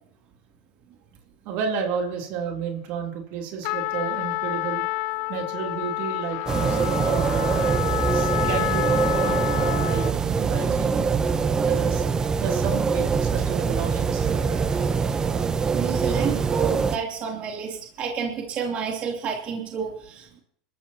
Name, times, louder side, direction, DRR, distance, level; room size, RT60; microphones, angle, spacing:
voice 1, 1.5-4.8 5.3-7.7 8.1-11.1 11.6-12.0 12.4-14.9, right 6 dB, 60° right, 1 dB, 3.5 m, -31 dB
Trumpet, 3.6-10.2, left 18 dB, 60° left, 0.6 m, -29 dB
sound 1, 6.5-17.0, right 5 dB, 20° right, 0.9 m, -23 dB
voice 2, 15.7-20.4, right 6 dB, 40° right, 0 dB, 3.2 m, -30 dB
26.0 x 13.5 x 3.0 m, 0.64 s
supercardioid pair, 115°, 3 cm